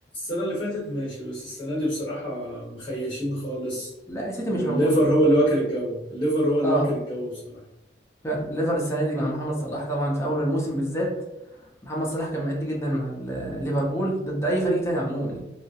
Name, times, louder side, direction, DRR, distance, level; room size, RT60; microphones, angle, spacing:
voice 1, 0.1-3.9 4.5-7.6, right 1 dB, 30° left, -7 dB, 0.9 m, -25 dB
voice 2, 4.1-5.1 6.6-6.9 8.2-11.1 11.8-15.4, right 1 dB, 15° left, -3 dB, 0.5 m, -26 dB
2.3 x 2.0 x 2.7 m, 0.91 s
head